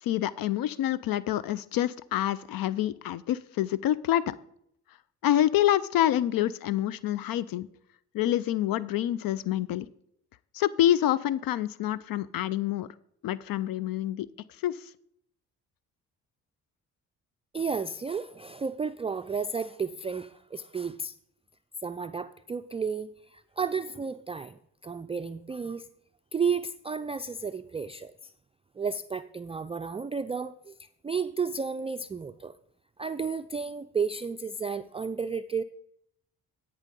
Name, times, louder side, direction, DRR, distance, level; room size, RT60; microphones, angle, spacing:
voice 1, 0.0-4.3 5.2-7.7 8.1-9.9 10.5-12.9 13.2-14.3 14.6-14.9, left 12 dB, 65° left, 19 dB, 0.5 m, -27 dB
voice 2, 17.5-21.1 21.8-25.9 26.3-28.3 28.8-32.5 33.0-35.6, right 5 dB, 15° right, 10 dB, 0.3 m, -32 dB
12.5 x 5.6 x 5.2 m, 0.72 s
supercardioid pair, 50°, 38 cm